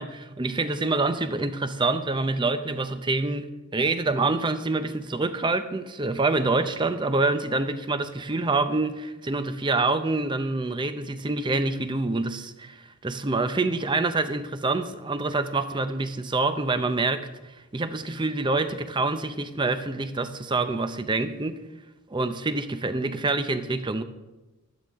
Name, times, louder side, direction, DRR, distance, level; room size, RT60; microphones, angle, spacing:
voice 1, 0.0-21.6 22.1-24.0, right 3 dB, 20° right, 0.6 m, -26 dB
15.5 x 11.5 x 3.5 m
head